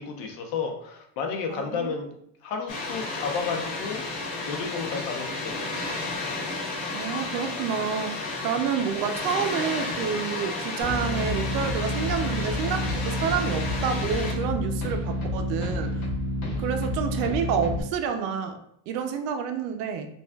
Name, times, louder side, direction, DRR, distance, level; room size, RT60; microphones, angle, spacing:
voice 1, 0.0-2.1 2.4-4.0 4.5-5.9, left 5 dB, 85° left, 3 dB, 1.0 m, -32 dB
voice 2, 1.5-2.0 6.9-15.9 16.6-18.6 18.9-20.1, right 7 dB, 65° right, 7 dB, 0.6 m, -29 dB
Water, 2.7-14.3, left 3 dB, 60° left, 1.1 m, -32 dB
sound 1, 10.8-17.8, left 1 dB, 35° left, 1.1 m, -29 dB
5.2 x 2.4 x 2.3 m, 0.71 s
cardioid pair, 175°, 47 cm